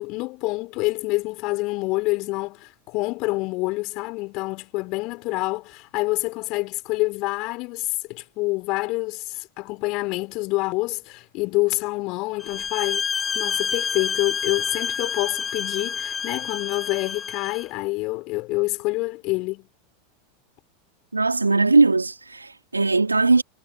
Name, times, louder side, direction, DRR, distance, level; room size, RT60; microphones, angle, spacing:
voice 1, 0.0-13.0 13.3-19.7, left 23 dB, 45° left, 3.4 m, -27 dB
sound 1, 12.4-17.7, left 6 dB, 20° left, 1.3 m, -28 dB
voice 2, 21.1-23.4, right 3 dB, 85° right, 3.2 m, -19 dB
figure-of-eight pair, 85°, 0 cm